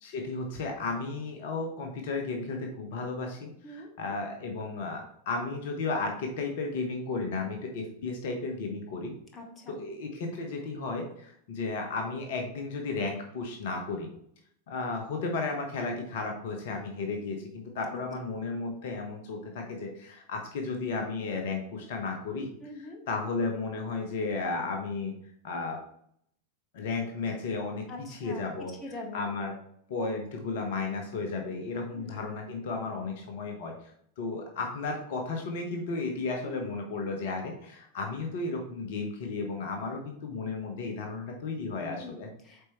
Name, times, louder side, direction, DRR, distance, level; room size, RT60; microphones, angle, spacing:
voice 1, 0.0-9.1 9.7-14.1 14.7-22.5 22.7-25.1 25.4-25.8 26.7-27.8 28.1-28.7 29.1-29.5 29.9-42.3, left 3 dB, 55° left, 3 dB, 1.0 m, -34 dB
voice 2, 9.3-9.8 17.9-18.4 22.6-23.0 27.9-28.4 28.8-29.4 31.9-32.3 36.4-36.7 41.8-42.7, left 2 dB, 25° left, 2 dB, 1.3 m, -43 dB
8.0 x 4.4 x 3.0 m, 0.68 s
figure-of-eight pair, 90°, 0 cm